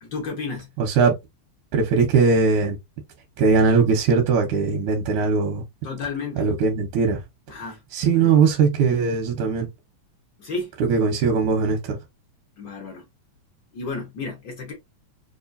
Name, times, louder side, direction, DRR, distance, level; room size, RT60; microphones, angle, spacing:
voice 1, 0.0-0.7 5.8-6.5 7.5-8.4 10.4-10.7 12.6-13.1 13.7-14.7, left 4 dB, 65° left, 1.0 m, -32 dB
voice 2, 0.8-1.1 1.7-2.8 3.4-5.6 6.4-7.2 7.9-9.7 10.8-12.0, right 5 dB, 85° right, 2.3 m, -20 dB
4.8 x 2.5 x 2.5 m
omnidirectional pair, 3.4 m